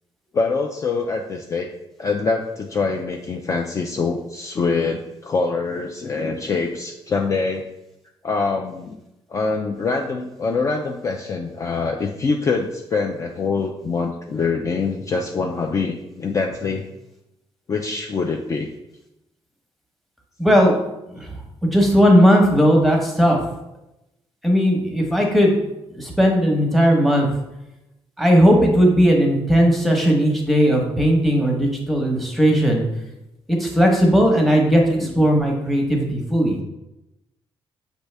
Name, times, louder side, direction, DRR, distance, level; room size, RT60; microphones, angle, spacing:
voice 1, 0.3-1.7 2.0-7.7 8.2-9.0 9.3-16.9 17.7-18.7 35.0-35.1, left 4 dB, 35° left, 1 dB, 0.4 m, -24 dB
voice 2, 20.4-20.7 21.1-21.3 21.6-23.4 24.4-25.6 25.9-27.3 28.2-32.8 33.5-36.6, equal, ahead, 1 dB, 0.9 m, -17 dB
6.1 x 2.7 x 3.3 m, 0.90 s
cardioid pair, 130°, 10 cm